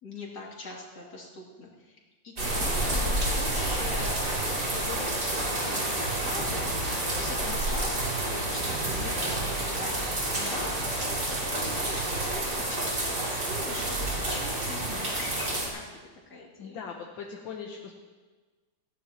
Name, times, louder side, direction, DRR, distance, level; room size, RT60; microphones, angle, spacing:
voice 1, 0.0-2.0 2.2-4.4 4.7-5.3 5.6-11.4 11.6-15.8 16.3-16.8, left 2 dB, 55° left, -3 dB, 3.1 m, -42 dB
sound 1, 2.4-15.7, right 1 dB, 55° right, 3.7 m, -29 dB
voice 2, 16.6-17.9, left 6 dB, 80° left, 0 dB, 1.8 m, -39 dB
18.5 x 16.0 x 3.0 m, 1.3 s
omnidirectional pair, 2.1 m